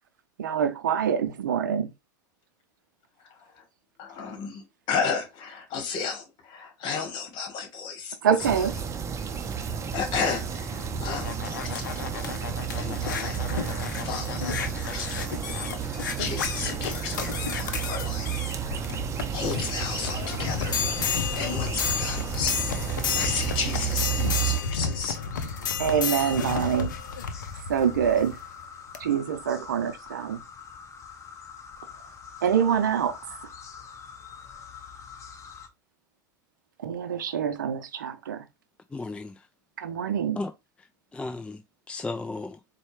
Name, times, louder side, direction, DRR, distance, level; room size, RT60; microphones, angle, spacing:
voice 1, 0.4-1.9 8.2-8.7 25.8-26.9 27.7-28.4 29.0-30.4 32.4-33.2 36.8-38.4 39.8-40.4, right 8 dB, 85° right, 0.6 m, -25 dB
voice 2, 3.3-3.6 4.0-8.5 9.2-15.3 15.6-18.9 19.1-25.2 25.6-25.8, left 5 dB, 50° left, 1.3 m, -34 dB
sound 1, 8.4-24.6, right 8 dB, 30° right, 0.6 m, -32 dB
sound 2, 10.7-28.4 28.9-29.0, left 6 dB, 90° left, 0.5 m, -32 dB
sound 3, 25.1-35.7, left 6 dB, 30° left, 0.9 m, -45 dB
voice 3, 38.9-39.5 40.4-40.5 40.8-41.6 41.9-42.6, left 3 dB, 10° left, 0.3 m, -35 dB
4.2 x 2.3 x 3.1 m
hypercardioid pair, 90°, 10 cm